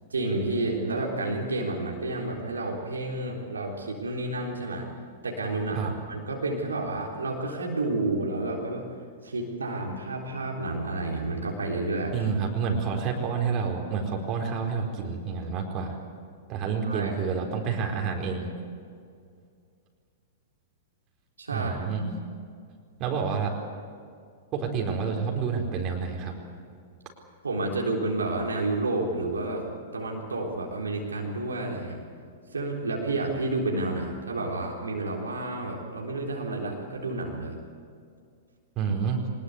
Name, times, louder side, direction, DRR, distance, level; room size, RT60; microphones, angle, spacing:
voice 1, 0.1-4.9 5.2-8.8 9.2-12.1 16.8-17.1 21.4-21.9 27.4-32.0 32.5-37.6, right 2 dB, 80° right, -1 dB, 3.8 m, -30 dB
voice 2, 12.1-16.0 16.5-18.5 21.5-22.1 23.0-23.5 24.5-26.4 38.8-39.2, right 5 dB, 35° right, 1 dB, 4.5 m, -29 dB
23.5 x 20.5 x 8.3 m, 2.3 s
figure-of-eight pair, 100°, 0 cm